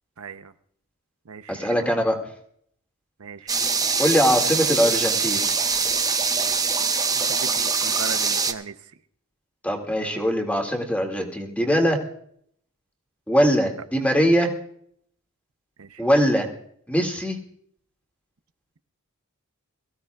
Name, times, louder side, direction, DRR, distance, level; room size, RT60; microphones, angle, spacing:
voice 1, 0.2-0.5 1.3-2.0 3.2-3.6 7.1-8.8 15.8-16.1, right 5 dB, 80° right, 10 dB, 0.8 m, -38 dB
voice 2, 1.5-2.2 4.0-5.4 9.6-12.0 13.3-14.5 16.0-16.5 16.9-17.4, equal, 5° left, 2 dB, 2.2 m, -21 dB
sound 1, 3.5-8.5, right 5 dB, 15° right, 0.8 m, -23 dB
23.0 x 15.5 x 2.3 m, 0.65 s
head